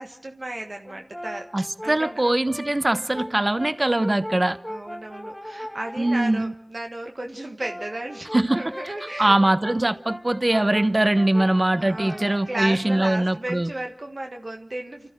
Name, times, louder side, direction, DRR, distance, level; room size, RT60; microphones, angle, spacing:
voice 1, 0.0-1.5 1.8-2.2 4.7-9.4 11.7-15.1, right 1 dB, 75° right, 1.6 m, -34 dB
Brass instrument, 0.8-6.4 7.4-13.2, equal, 10° left, 2.4 m, -38 dB
voice 2, 1.5-4.6 6.0-6.5 8.3-13.7, right 1 dB, 45° right, 0.9 m, -22 dB
29.5 x 14.0 x 6.3 m
wide cardioid pair, 45°, 0 cm